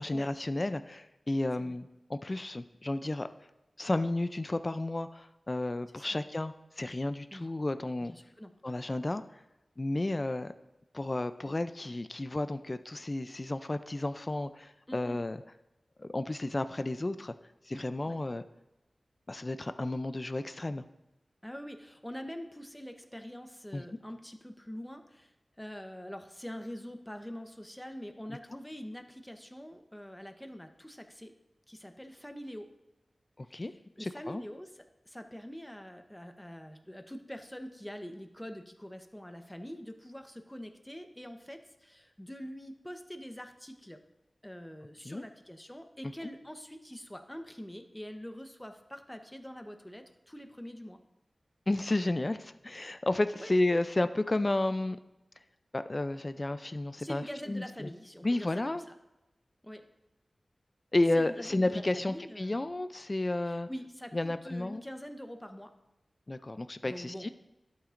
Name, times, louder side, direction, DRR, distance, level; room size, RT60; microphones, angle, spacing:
voice 1, 0.0-3.3 3.8-8.1 8.6-9.2 9.8-10.5 10.9-15.4 16.0-17.3 17.7-18.4 19.3-20.8 23.7-23.8 28.3-28.4 33.4-33.7 34.0-34.4 45.1-45.2 51.7-55.0 55.7-57.9 58.2-58.8 60.9-63.7 64.1-64.8 66.3-67.3, left 2 dB, 35° left, 11 dB, 0.4 m, -32 dB
voice 2, 8.1-8.5 14.9-15.2 18.0-18.2 21.4-31.3 31.7-32.7 33.4-33.6 34.0-44.0 44.4-51.0 53.4-53.5 57.0-58.8 59.6-59.8 61.1-62.6 63.4-65.7 66.8-67.3, equal, 10° left, 6 dB, 0.8 m, -45 dB
11.5 x 8.3 x 2.5 m, 0.94 s
wide cardioid pair, 55°, 0 cm